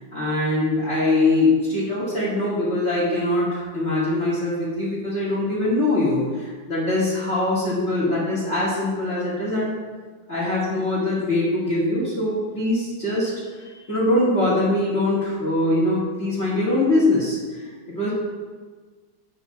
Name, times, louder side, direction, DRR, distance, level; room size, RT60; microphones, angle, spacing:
voice 1, 0.0-9.7 10.3-18.1, left 2 dB, 35° left, -7 dB, 2.3 m, -23 dB
8.6 x 5.8 x 5.8 m, 1.5 s
omnidirectional pair, 2.1 m